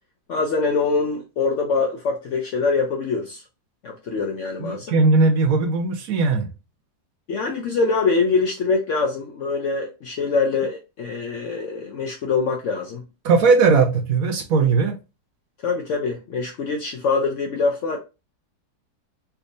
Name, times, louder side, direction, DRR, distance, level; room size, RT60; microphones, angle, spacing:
voice 1, 0.3-3.4 3.8-5.0 7.3-13.1 15.6-18.0, left 4 dB, 70° left, 0.7 m, -24 dB
voice 2, 4.6-6.5 13.2-14.9, right 4 dB, 65° right, 0.9 m, -18 dB
3.5 x 2.7 x 2.5 m
omnidirectional pair, 1.8 m